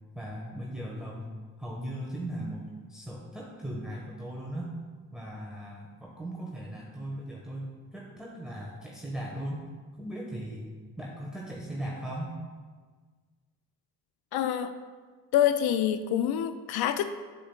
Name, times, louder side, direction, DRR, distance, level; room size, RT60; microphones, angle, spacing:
voice 1, 0.1-1.3 1.6-2.6 2.9-4.7 5.1-9.6 10.0-10.6 11.0-12.3, right 1 dB, ahead, -4 dB, 1.3 m, -38 dB
voice 2, 14.3-14.7 15.3-17.1, left 10 dB, 60° left, 9 dB, 0.5 m, -26 dB
8.5 x 7.4 x 2.3 m, 1.5 s
hypercardioid pair, 50°, 43 cm